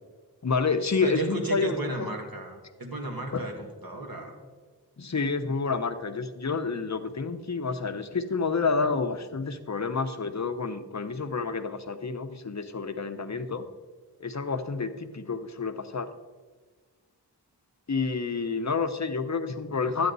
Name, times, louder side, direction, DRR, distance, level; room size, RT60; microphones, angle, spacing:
voice 1, 0.4-2.1 3.3-3.4 5.0-13.7 14.2-16.1 17.9-20.1, left 4 dB, 40° left, 9 dB, 0.8 m, -29 dB
voice 2, 1.0-4.4, right 2 dB, 55° right, 1 dB, 2.1 m, -34 dB
12.5 x 8.8 x 4.0 m, 1.4 s
wide cardioid pair, 40°, 43 cm